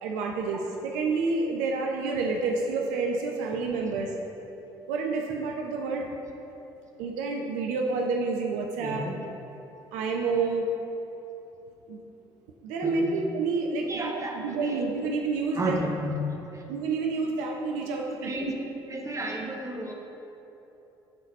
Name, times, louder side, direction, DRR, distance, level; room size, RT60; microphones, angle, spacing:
voice 1, 0.0-4.1 4.9-6.2 7.0-9.1 9.9-10.7 11.9-12.0 12.6-15.8 16.7-18.5, right 4 dB, 70° right, 1 dB, 0.6 m, -29 dB
voice 2, 8.8-9.2 12.8-13.2 13.9-14.8 15.6-16.6 18.2-18.5 18.9-19.9, equal, 25° right, 1 dB, 1.1 m, -33 dB
9.6 x 4.0 x 4.1 m, 3.0 s
hypercardioid pair, 50°, 13 cm